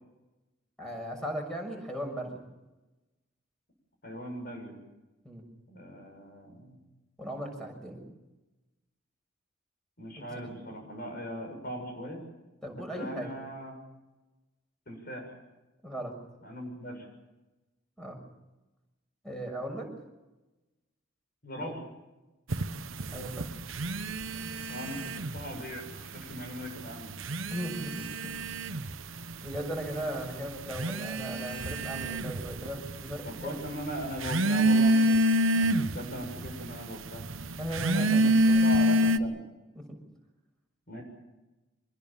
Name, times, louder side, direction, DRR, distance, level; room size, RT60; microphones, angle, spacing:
voice 1, 0.8-2.4 5.2-5.4 7.2-8.0 12.6-13.3 15.8-16.1 18.0-18.2 19.2-19.9 21.6-21.8 23.1-23.5 27.5-28.3 29.4-33.6 37.6-38.7 39.7-40.0, equal, 5° left, 3 dB, 6.5 m, -37 dB
voice 2, 4.0-4.7 5.7-6.8 10.0-12.2 12.7-13.7 14.9-15.3 16.4-17.1 21.4-21.8 24.7-27.1 33.3-37.3 37.9-39.4 40.9-41.0, equal, 45° left, 3 dB, 7.1 m, -39 dB
sound 1, 22.5-25.6 25.9-26.6 27.1-39.2, right 1 dB, 75° right, 1.1 m, -27 dB
25.5 x 21.0 x 7.2 m, 1.1 s
head